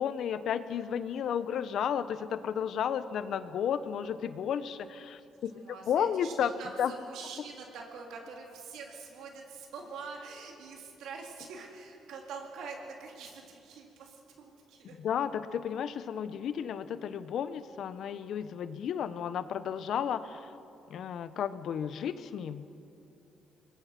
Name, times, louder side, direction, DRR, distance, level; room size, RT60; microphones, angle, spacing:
voice 1, 0.0-6.5 6.8-6.9 15.0-20.5 20.9-22.6, left 8 dB, 70° left, 13 dB, 1.0 m, -33 dB
voice 2, 5.5-15.0, right 4 dB, 85° right, 0 dB, 4.0 m, -45 dB
25.5 x 21.0 x 6.0 m, 2.8 s
cardioid pair, 90°, 0 cm